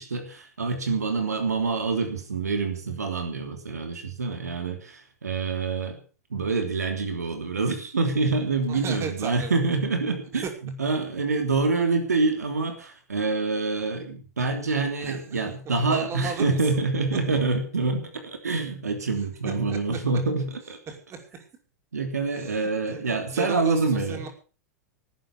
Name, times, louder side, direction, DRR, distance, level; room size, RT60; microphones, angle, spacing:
voice 1, 0.0-6.0 6.3-20.8 21.9-24.2, right 3 dB, 85° right, 5 dB, 3.2 m, -26 dB
voice 2, 8.7-9.6 10.3-10.5 15.0-15.4 15.8-16.8 19.1-20.0 20.6-21.5 22.3-24.3, right 6 dB, 30° right, 4 dB, 5.5 m, -36 dB
19.0 x 9.3 x 7.0 m, 0.38 s
hypercardioid pair, 95°, 8 cm